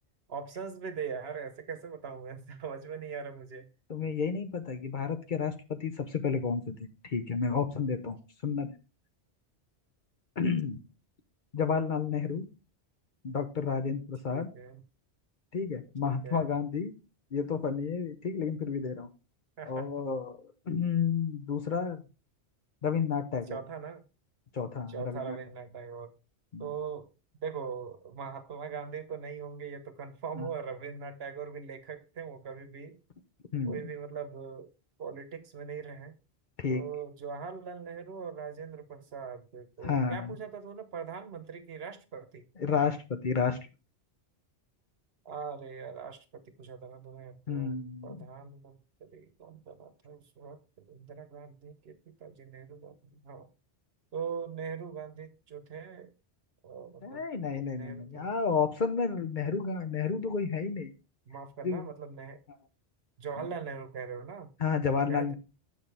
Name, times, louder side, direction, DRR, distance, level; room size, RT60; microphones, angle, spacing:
voice 1, 0.3-3.7 14.2-14.8 16.0-16.5 19.6-19.9 23.5-24.0 24.9-26.1 26.6-27.1 27.4-33.0 33.6-34.7 35.0-36.2 36.7-42.5 45.2-47.8 48.0-50.6 50.9-53.5 54.1-56.1 56.6-57.2 57.7-58.3 61.3-62.4 63.2-64.5 65.1-65.3, right 6 dB, 65° right, 1.1 m, -41 dB
voice 2, 3.9-6.8 7.0-8.2 8.4-8.7 10.4-10.8 11.5-12.5 13.2-14.5 15.5-16.9 17.3-19.1 19.7-22.0 22.8-23.6 24.5-25.4 26.5-26.7 30.4-30.5 33.5-33.8 36.6-36.8 39.8-40.4 42.6-43.6 47.5-48.3 57.0-60.9 61.6-61.8 63.4-63.5 64.6-65.3, left 5 dB, 50° left, 0.9 m, -31 dB
7.2 x 6.5 x 3.3 m
omnidirectional pair, 1.1 m